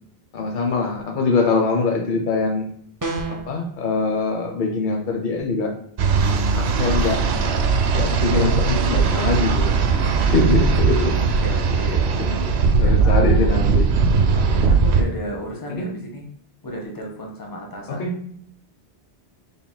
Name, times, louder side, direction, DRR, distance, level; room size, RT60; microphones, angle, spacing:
voice 1, 0.3-2.7 3.3-5.7 6.6-7.2 7.9-9.8 10.2-11.2 12.2-12.4 12.8-13.9 15.0-15.1 15.7-15.9 17.9-18.2, left 3 dB, 55° left, 4 dB, 0.9 m, -23 dB
sound 1, 3.0-3.5, right 3 dB, 30° right, 0.4 m, -27 dB
sound 2, 6.0-15.0, right 4 dB, 85° right, 0.9 m, -19 dB
voice 2, 11.2-12.2 12.8-13.6 14.3-16.2 16.6-18.0, equal, 20° left, 0 dB, 0.9 m, -34 dB
5.7 x 3.6 x 2.2 m, 0.66 s
omnidirectional pair, 1.1 m